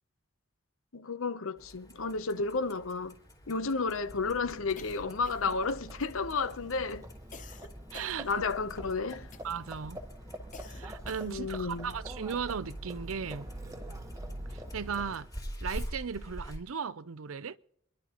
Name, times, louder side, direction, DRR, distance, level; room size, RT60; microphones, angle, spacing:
voice 1, 0.9-3.1 3.5-7.1 8.2-9.3 11.2-11.9, left 4 dB, 80° left, 0.9 m, -32 dB
Clock, 1.6-16.6, equal, 20° left, 3.5 m, -47 dB
Livestock farm animals working animals, 3.8-15.5, right 1 dB, 15° right, 1.3 m, -45 dB
sound 1, 4.8-5.7 6.0-6.5 7.3-8.8 9.3-9.7 10.5-11.5, left 4 dB, 35° left, 0.8 m, -51 dB
voice 2, 7.9-8.3 9.4-10.0 10.7-13.5 14.5-15.3 15.6-17.6, right 6 dB, 85° right, 0.6 m, -36 dB
26.5 x 11.5 x 3.0 m
head